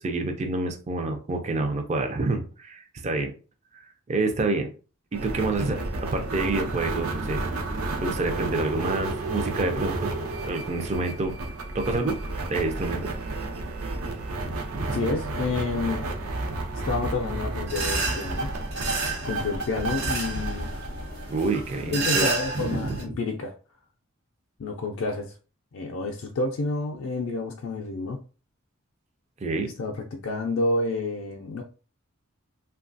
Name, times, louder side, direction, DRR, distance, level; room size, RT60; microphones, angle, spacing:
voice 1, 0.0-3.3 4.1-4.7 5.1-7.4 8.0-10.1 10.4-11.4 11.7-12.2 12.5-13.1 14.7-15.1 21.3-22.3 22.5-23.2 29.4-29.7, right 3 dB, 30° right, 5 dB, 0.4 m, -28 dB
sound 1, 5.1-21.6, right 2 dB, 80° right, 0.6 m, -31 dB
voice 2, 14.9-16.0 16.8-18.5 19.2-20.7 21.9-23.5 24.6-25.3 25.7-28.2 29.8-31.6, left 3 dB, 60° left, 1 dB, 0.4 m, -29 dB
sound 2, 17.7-23.0, right 3 dB, 50° right, 1.0 m, -31 dB
3.1 x 2.3 x 2.5 m, 0.36 s
head